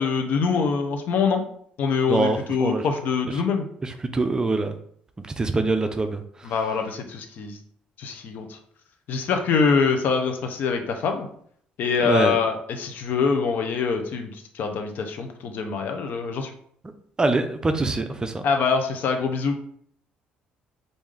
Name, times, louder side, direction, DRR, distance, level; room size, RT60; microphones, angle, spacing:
voice 1, 0.0-1.4 1.8-3.6 6.4-7.6 8.0-8.6 9.1-11.3 11.8-16.5 18.4-19.6, left 5 dB, 65° left, 5 dB, 0.6 m, -24 dB
voice 2, 2.1-2.9 3.8-4.8 5.2-6.2 12.0-12.4 17.2-18.4, right 3 dB, 20° right, 8 dB, 0.4 m, -24 dB
3.2 x 2.6 x 3.7 m, 0.63 s
cardioid pair, 90°, 3 cm